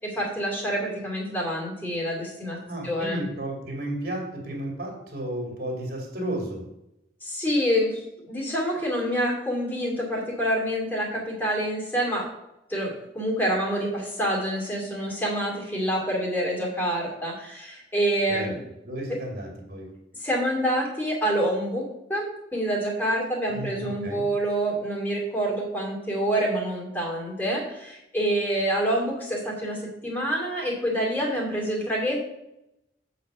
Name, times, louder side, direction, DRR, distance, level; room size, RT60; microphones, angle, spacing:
voice 1, 0.0-2.6 2.8-3.2 7.2-12.3 12.7-18.6 20.1-21.8 22.1-22.3 22.5-29.8 30.0-32.2, equal, 10° left, -3 dB, 2.5 m, -27 dB
voice 2, 2.6-6.7 18.3-18.5 18.8-19.9 23.5-24.2, right 1 dB, 50° right, 0 dB, 2.6 m, -33 dB
8.1 x 4.2 x 6.6 m, 0.86 s
head